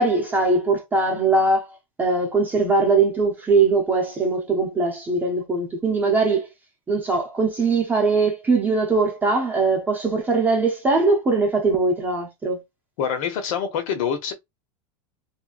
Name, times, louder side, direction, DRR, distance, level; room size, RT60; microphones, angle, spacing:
voice 1, 0.0-6.5 6.9-12.6, right 3 dB, 10° right, 0.8 m, -21 dB
voice 2, 13.0-14.3, left 7 dB, 65° left, 1.4 m, -25 dB
4.0 x 2.8 x 2.4 m
supercardioid pair, 170°, 18 cm